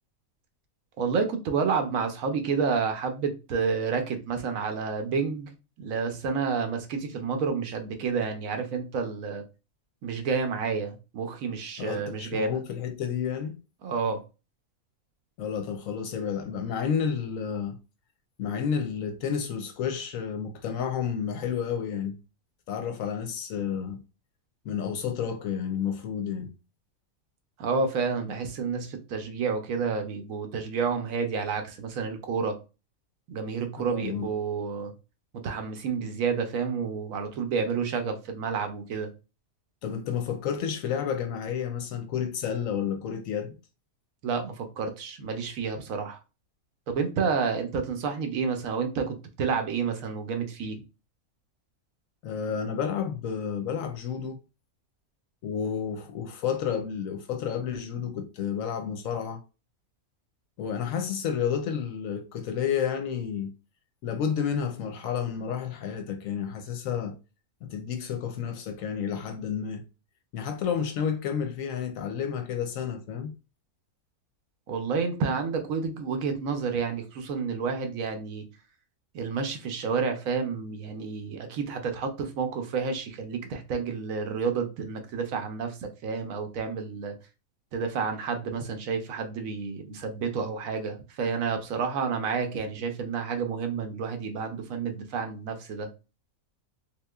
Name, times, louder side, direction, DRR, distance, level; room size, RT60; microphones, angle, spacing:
voice 1, 1.0-9.4 10.0-12.5 13.8-14.2 27.6-32.6 33.3-34.9 35.3-39.1 44.2-46.2 46.9-50.8 74.7-78.5 79.1-87.1 87.7-95.9, right 5 dB, 70° right, 1.0 m, -30 dB
voice 2, 11.8-13.6 15.4-17.8 18.4-22.2 22.7-24.0 24.6-26.5 33.8-34.3 39.8-43.6 52.2-54.4 55.4-59.4 60.6-63.5 64.0-67.1 67.6-69.8 70.3-73.3, left 7 dB, 70° left, 0.9 m, -31 dB
3.7 x 2.8 x 2.3 m
omnidirectional pair, 1.5 m